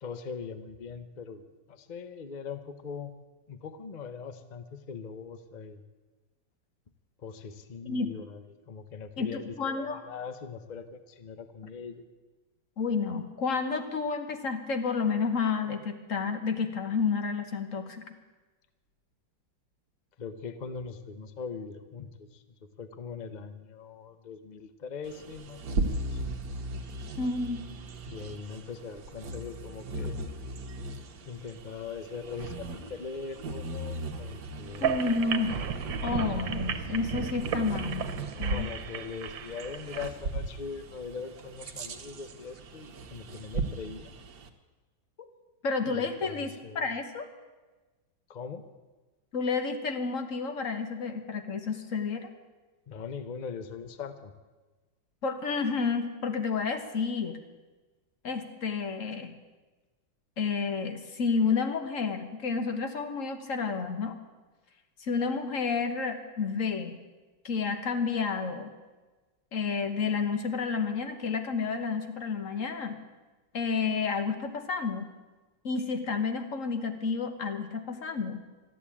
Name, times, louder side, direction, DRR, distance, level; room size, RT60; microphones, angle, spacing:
voice 1, 0.0-1.4 1.7-3.1 3.5-5.8 7.2-12.1 20.2-22.4 22.8-26.2 28.1-30.3 31.3-35.0 38.4-44.1 45.9-46.9 48.3-48.7 52.9-54.3, left 5 dB, 65° left, 10 dB, 0.4 m, -41 dB
voice 2, 9.2-10.0 12.8-18.0 27.2-27.6 34.8-35.6 36.0-38.1 38.4-38.7 45.6-47.3 49.3-52.3 55.2-57.4 58.2-59.4 60.4-64.1 65.0-67.0 67.4-68.7 69.5-73.0 73.5-75.1 75.6-78.4, left 5 dB, 45° left, 7 dB, 1.5 m, -30 dB
Bird vocalization bird call bird song, 25.0-44.5, right 2 dB, 65° right, 1.7 m, -38 dB
sound 1, 34.7-40.1, right 7 dB, 85° right, 1.7 m, -34 dB
13.5 x 11.0 x 8.4 m, 1.2 s
omnidirectional pair, 2.0 m